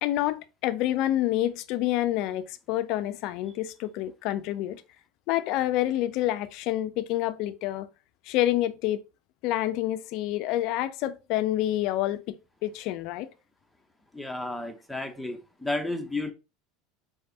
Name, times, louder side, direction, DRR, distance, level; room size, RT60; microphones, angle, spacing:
voice 1, 0.0-4.8 5.3-7.9 8.3-9.0 9.4-12.4 12.6-13.3, left 14 dB, 60° left, 0.4 m, -28 dB
voice 2, 14.1-16.3, left 2 dB, ahead, 0.8 m, -32 dB
4.7 x 3.2 x 2.7 m
hypercardioid pair, 90°, 0 cm